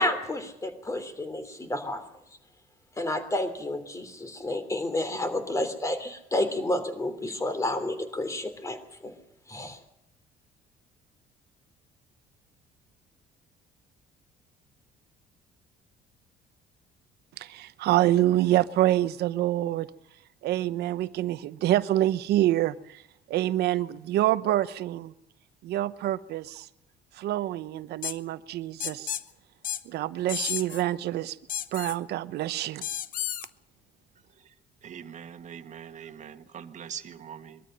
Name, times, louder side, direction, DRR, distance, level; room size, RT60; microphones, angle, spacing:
voice 1, 0.0-2.0 3.0-9.1 9.5-9.8, left 1 dB, 20° left, 10 dB, 3.1 m, -30 dB
voice 2, 17.4-19.9 20.4-23.0 23.3-25.1 25.6-26.7 27.2-29.1 29.9-31.4 31.7-32.8, right 14 dB, 75° right, 14 dB, 0.9 m, -26 dB
sound 1, 28.0-28.2 28.8-29.2 29.6-29.8 30.3-30.8 31.5-32.0 32.8-33.5, left 10 dB, 55° left, 1.0 m, -32 dB
voice 3, 34.8-37.6, right 8 dB, 45° right, 8 dB, 1.6 m, -42 dB
22.0 x 13.5 x 9.0 m, 0.81 s
cardioid pair, 110°, 17 cm